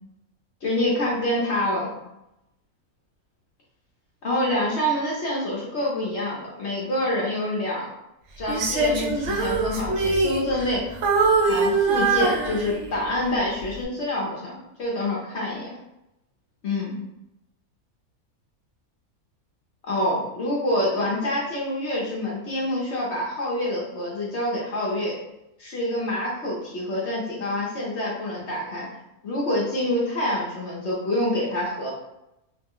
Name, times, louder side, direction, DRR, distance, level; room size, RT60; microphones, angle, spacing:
voice 1, 0.6-1.9 4.2-7.9 8.4-10.8 11.4-14.5 14.8-15.7 16.6-17.0 19.8-25.2 25.6-28.9 29.2-31.9, left 1 dB, 55° left, -5 dB, 0.9 m, -26 dB
Female singing, 8.5-10.8 11.0-13.1 13.6-13.8, right 3 dB, 65° right, 0.8 m, -23 dB
3.2 x 2.0 x 3.6 m, 0.87 s
omnidirectional pair, 1.5 m